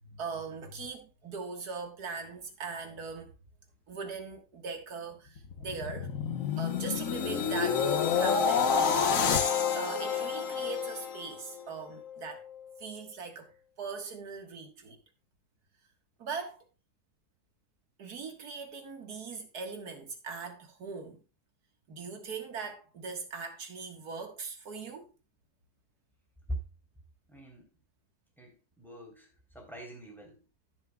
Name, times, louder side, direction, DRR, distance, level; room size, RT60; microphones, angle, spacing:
voice 1, 0.0-3.3 3.9-6.1 6.6-12.5 12.8-13.5 13.8-15.0 16.2-16.6 18.0-21.2 21.9-25.1, right 5 dB, 70° right, 2.2 m, -40 dB
sound 1, 5.4-11.6 12.1-12.3, left 6 dB, 60° left, 1.4 m, -29 dB
voice 2, 27.3-27.7 28.4-29.3 29.5-30.4, equal, ahead, 3.5 m, -42 dB
16.0 x 7.1 x 2.3 m
omnidirectional pair, 1.7 m